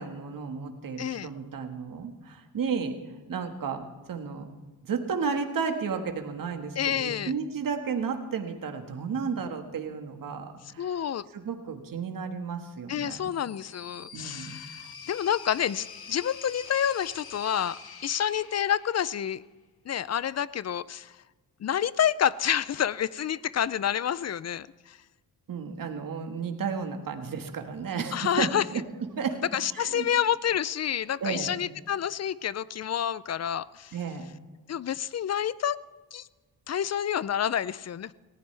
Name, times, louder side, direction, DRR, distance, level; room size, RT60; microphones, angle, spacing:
voice 1, 0.0-3.0 3.3-4.5 4.9-11.0 11.3-13.3 14.1-14.5 25.5-28.8 29.2-29.4 29.7-30.1 31.2-31.5 33.9-34.2, right 5 dB, 55° right, 5 dB, 1.7 m, -33 dB
voice 2, 1.0-1.3 6.8-7.3 10.8-11.3 12.9-19.4 19.9-21.1 21.6-25.0 28.1-28.6 29.5-33.9 34.7-35.8 36.1-36.3 36.7-38.1, left 9 dB, 40° left, 19 dB, 0.5 m, -28 dB
sound 1, 13.2-19.5, left 6 dB, 65° left, 1.8 m, -46 dB
19.0 x 15.0 x 3.4 m, 1.3 s
cardioid pair, 85°, 39 cm